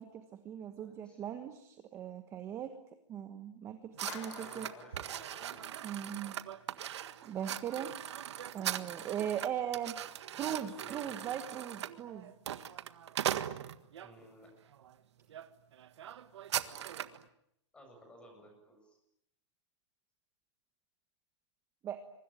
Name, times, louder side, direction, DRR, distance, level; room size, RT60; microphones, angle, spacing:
voice 1, 0.0-2.7 3.1-4.7 5.8-6.3 7.2-7.9 8.5-10.0 10.3-12.3 21.8-22.0, right 9 dB, 15° right, 8 dB, 1.3 m, -39 dB
voice 2, 0.8-1.2 4.1-5.7 10.3-11.6 14.0-14.5 17.7-19.0, equal, 5° left, 4 dB, 7.7 m, -57 dB
sound 1, 4.0-14.1 14.7-14.9 15.3-15.5 15.7-17.2, right 10 dB, 65° right, 1.7 m, -40 dB
sound 2, 4.1-6.3, left 6 dB, 40° left, 7.1 m, -51 dB
26.5 x 24.0 x 9.0 m, 0.76 s
hypercardioid pair, 165°, 15 cm